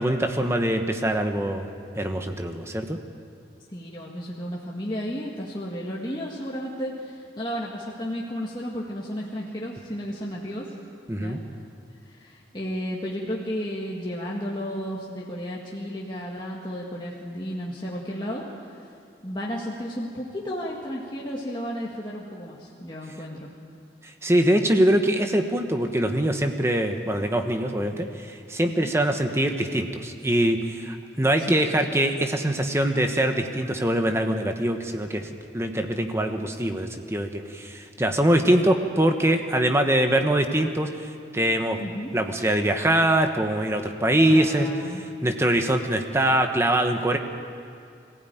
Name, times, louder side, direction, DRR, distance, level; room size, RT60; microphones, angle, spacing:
voice 1, 0.0-1.7 2.0-3.0 11.1-11.4 24.2-41.8 42.1-44.7 45.2-47.2, right 1 dB, 15° right, 5 dB, 1.2 m, -23 dB
voice 2, 3.7-10.7 11.1-11.4 12.1-18.8 19.2-23.5 28.7-28.9 31.4-32.0 41.8-42.1 44.3-45.0, equal, 25° left, -4 dB, 1.8 m, -33 dB
23.0 x 16.0 x 9.3 m, 2.4 s
head